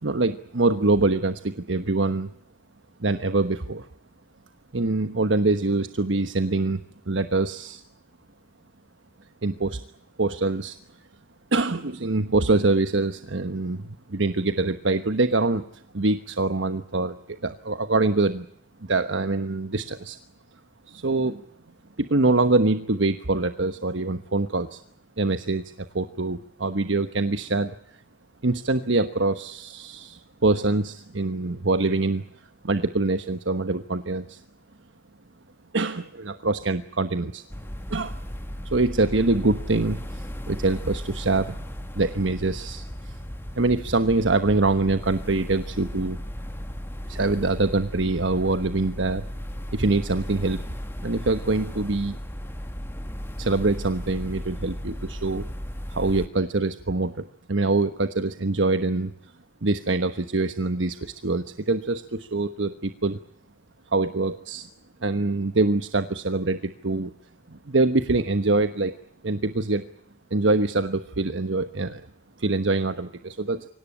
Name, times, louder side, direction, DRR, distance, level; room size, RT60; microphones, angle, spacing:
voice 1, 0.0-2.3 3.0-3.9 4.7-6.8 7.1-7.8 9.4-9.8 10.2-10.8 11.5-15.6 15.9-18.5 18.8-20.2 20.9-21.4 22.0-24.8 25.2-25.6 25.9-27.7 28.4-32.2 32.6-34.4 35.7-37.4 37.9-38.2 38.6-41.6 41.9-43.1 43.5-46.2 47.1-49.3 49.7-50.6 51.0-52.2 53.4-55.5 55.9-59.1 59.6-63.2 63.9-64.7 65.0-67.1 67.5-68.9 69.2-69.8 70.3-72.0 72.4-73.7, right 2 dB, 80° right, 10 dB, 1.2 m, -24 dB
sound 1, 37.5-56.3, equal, 10° left, 1.6 m, -35 dB
25.0 x 18.0 x 9.9 m, 0.69 s
head